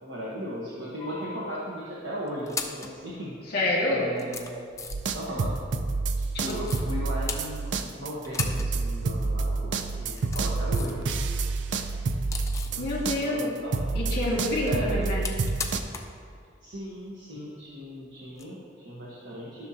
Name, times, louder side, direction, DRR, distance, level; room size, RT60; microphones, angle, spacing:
voice 1, 0.0-3.4 3.9-4.7 5.1-5.5 6.2-11.1 11.7-11.8 12.7-12.9 13.2-13.8 14.6-14.9 16.6-19.7, equal, 85° right, -6 dB, 1.3 m, -37 dB
sound 1, 1.0-1.6 2.3-3.0 3.7-3.8 4.1-5.2 6.5-6.9 7.3-7.9 8.2-8.7 9.0-9.1 9.9-11.0 11.4-12.8 14.2-16.2 16.4-16.5 18.3-18.4, left 5 dB, 15° left, 0.5 m, -38 dB
voice 2, 3.5-4.1 6.3-6.6 12.8-13.5 13.9-15.2, left 2 dB, 55° left, -4 dB, 1.9 m, -27 dB
sound 2, 4.9-13.5 13.7-15.8, right 3 dB, 70° right, 0.5 m, -29 dB
13.5 x 6.3 x 2.9 m, 2.2 s
head